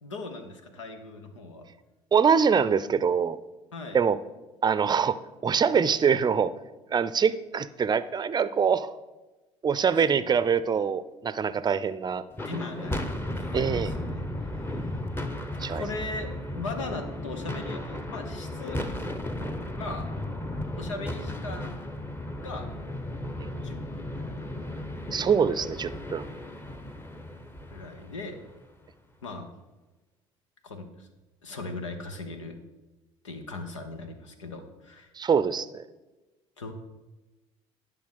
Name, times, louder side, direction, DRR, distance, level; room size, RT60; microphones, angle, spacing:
voice 1, 0.0-1.7 3.7-4.0 9.9-10.3 12.4-15.0 15.7-18.8 19.8-20.1 20.8-21.9 22.4-22.7 23.6-24.6 27.7-28.4 29.2-29.5 30.6-31.1 31.4-32.6 33.2-35.1 36.6-36.7, left 3 dB, 85° left, 6 dB, 1.1 m, -39 dB
voice 2, 2.1-3.4 3.9-4.2 4.6-5.2 5.4-6.5 6.9-9.0 9.6-12.2 13.5-13.9 15.6-15.8 25.1-26.3 35.2-35.8, right 6 dB, 25° right, 16 dB, 0.6 m, -24 dB
sound 1, 12.3-28.7, left 1 dB, 15° left, 1.1 m, -35 dB
10.0 x 5.6 x 6.3 m, 1.1 s
hypercardioid pair, 60°, 15 cm